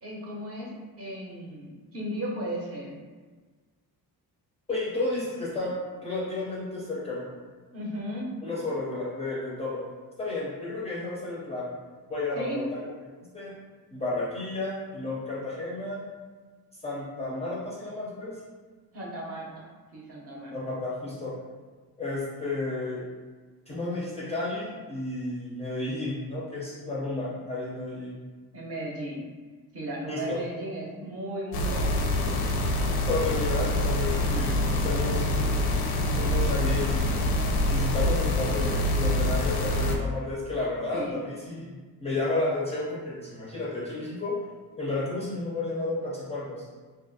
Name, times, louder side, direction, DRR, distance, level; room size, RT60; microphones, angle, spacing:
voice 1, 0.0-2.9 7.7-8.3 12.3-12.6 18.9-19.6 19.9-20.6 28.5-29.2 29.7-32.2 40.9-41.2, right 1 dB, 40° right, -4 dB, 0.6 m, -36 dB
voice 2, 4.7-7.3 8.4-9.8 10.2-11.7 12.1-12.8 13.3-13.5 13.9-16.0 16.8-18.4 20.5-21.3 22.0-23.0 23.7-28.2 30.1-30.4 33.1-35.2 36.0-37.3 37.7-44.4 44.8-46.7, left 2 dB, 15° left, -7 dB, 0.4 m, -32 dB
sound 1, 31.5-40.0, left 1 dB, 85° left, 0.5 m, -25 dB
2.7 x 2.4 x 2.6 m, 1.4 s
cardioid pair, 150°, 38 cm